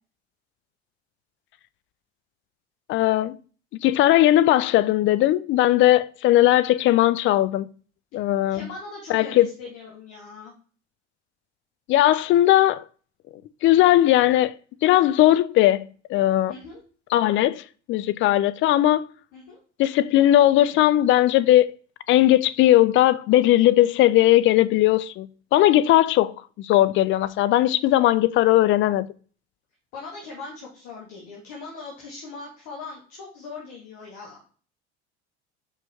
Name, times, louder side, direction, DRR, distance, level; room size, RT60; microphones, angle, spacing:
voice 1, 2.9-3.4 3.7-7.7 8.1-8.7 9.1-9.5 11.9-12.8 13.6-16.5 17.1-17.6 17.9-19.1 19.8-21.7 22.1-29.1, left 14 dB, 35° left, 0.4 m, -18 dB
voice 2, 8.5-10.5 16.5-16.8 19.3-19.6 29.9-34.4, left 4 dB, 60° left, 2.1 m, -40 dB
5.5 x 5.1 x 3.5 m
figure-of-eight pair, 65°, 34 cm